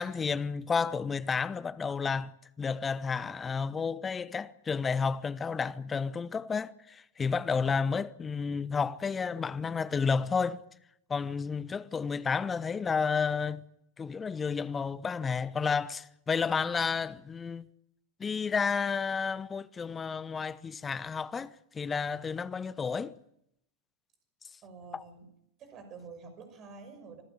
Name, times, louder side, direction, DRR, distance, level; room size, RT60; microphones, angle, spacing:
voice 1, 0.0-2.3 2.6-10.6 11.1-13.6 14.0-17.7 18.2-23.1 24.9-25.0, left 5 dB, 15° left, 0.9 m, -31 dB
voice 2, 24.6-25.3 25.6-27.2, right 4 dB, 30° right, 5.9 m, -48 dB
26.5 x 16.5 x 7.3 m
figure-of-eight pair, 90°, 0 cm